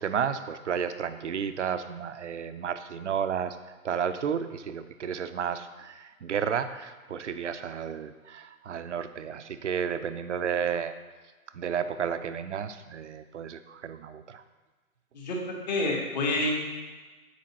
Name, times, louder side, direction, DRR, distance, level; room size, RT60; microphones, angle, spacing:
voice 1, 0.0-3.6 3.8-10.9 11.5-14.4, right 7 dB, 55° right, 10 dB, 0.5 m, -32 dB
voice 2, 15.1-16.6, left 2 dB, 30° left, -1 dB, 1.2 m, -28 dB
7.8 x 4.9 x 4.1 m, 1.3 s
hypercardioid pair, 160°, 45 cm